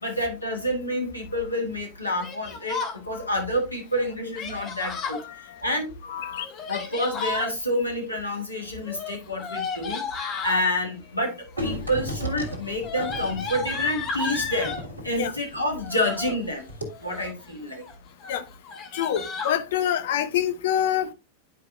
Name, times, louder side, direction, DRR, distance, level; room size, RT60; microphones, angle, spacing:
voice 1, 0.0-5.9 6.7-10.0 10.4-14.7 15.0-16.7 17.0-17.8, left 1 dB, 85° left, 1.5 m, -28 dB
Yell, 2.2-3.0 4.3-5.2 6.4-7.5 8.8-10.6 11.5-11.9 12.2-14.8 15.8-16.4 16.9-17.4 17.8-18.0 18.2-18.3 18.6-19.6, left 4 dB, 30° left, 1.6 m, -33 dB
voice 2, 6.1-6.5 15.2-15.3 18.3-18.4 18.9-21.1, left 10 dB, 55° left, 0.6 m, -26 dB
sound 1, 11.6-16.4 16.7-16.8, equal, 80° right, 1.5 m, -35 dB
10.0 x 4.7 x 2.3 m
figure-of-eight pair, 90°, 0 cm